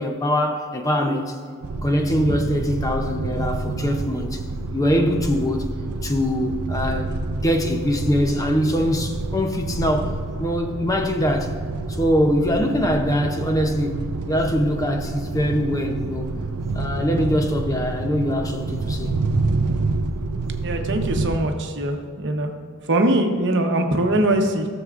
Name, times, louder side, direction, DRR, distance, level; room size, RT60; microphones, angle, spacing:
voice 1, 0.0-1.4 1.8-4.4 4.7-5.6 6.0-11.5 11.9-16.3 16.7-19.1, equal, 15° left, 0.5 m, -23 dB
sound 1, 1.6-21.4, right 3 dB, 85° right, 0.5 m, -28 dB
voice 2, 20.6-22.5 22.9-24.7, right 1 dB, 55° right, 0.9 m, -22 dB
14.0 x 7.0 x 2.4 m
head